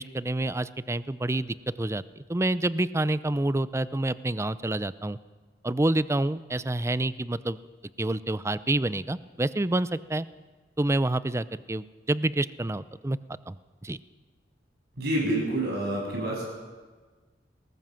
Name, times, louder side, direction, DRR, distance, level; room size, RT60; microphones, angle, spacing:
voice 1, 0.0-5.2 5.6-7.6 8.0-10.3 10.8-13.2 13.5-13.6 13.8-14.0, right 1 dB, 15° right, 16 dB, 0.5 m, -28 dB
voice 2, 15.0-16.4, right 1 dB, 65° right, -1 dB, 7.7 m, -28 dB
20.0 x 18.0 x 7.6 m, 1.4 s
head